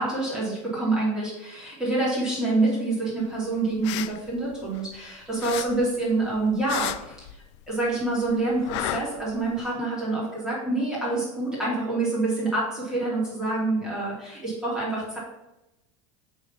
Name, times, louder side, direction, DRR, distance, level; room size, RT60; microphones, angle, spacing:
voice 1, 0.0-7.2 7.7-15.2, right 2 dB, 5° right, -8 dB, 2.6 m, -27 dB
sound 1, 3.6-5.1 5.4-9.7, left 13 dB, 60° left, 0.4 m, -34 dB
6.1 x 3.9 x 5.6 m, 0.95 s
supercardioid pair, 160°, 17 cm